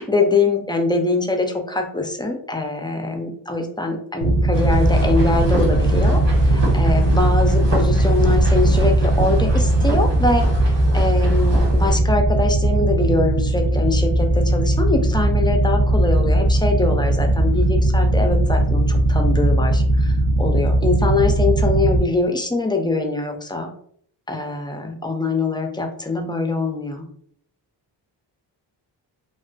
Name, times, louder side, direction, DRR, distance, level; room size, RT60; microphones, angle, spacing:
voice 1, 0.0-6.2 6.5-10.5 10.9-20.1 20.4-23.7 24.3-27.0, left 2 dB, 10° left, 3 dB, 0.3 m, -23 dB
sound 1, 4.2-22.0, right 1 dB, 45° right, 0.7 m, -18 dB
sound 2, 4.5-12.0, equal, 85° right, 1.4 m, -27 dB
2.4 x 2.3 x 2.2 m, 0.63 s
cardioid pair, 70°, 43 cm